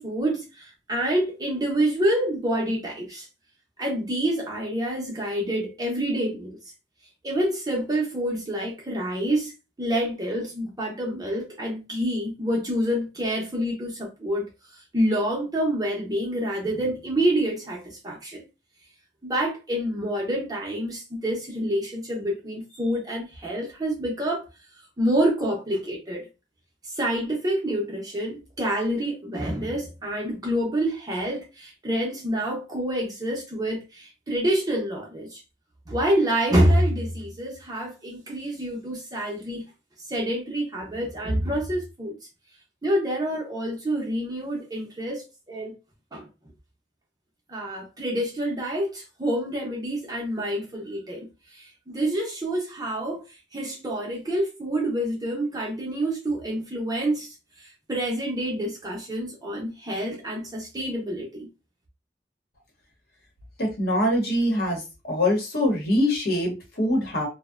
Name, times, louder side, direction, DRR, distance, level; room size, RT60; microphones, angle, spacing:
voice 1, 0.0-3.3 3.8-6.6 7.2-9.5 9.8-14.5 14.9-18.5 19.2-24.5 25.0-26.3 26.8-35.4 35.9-39.6 40.1-42.1 42.8-45.8 46.1-46.3 47.5-53.2 53.5-57.3 57.6-61.5, right 1 dB, 20° right, 0.6 m, -27 dB
voice 2, 63.6-64.8 65.1-67.3, left 1 dB, 60° left, 0.9 m, -23 dB
2.6 x 2.0 x 2.4 m
head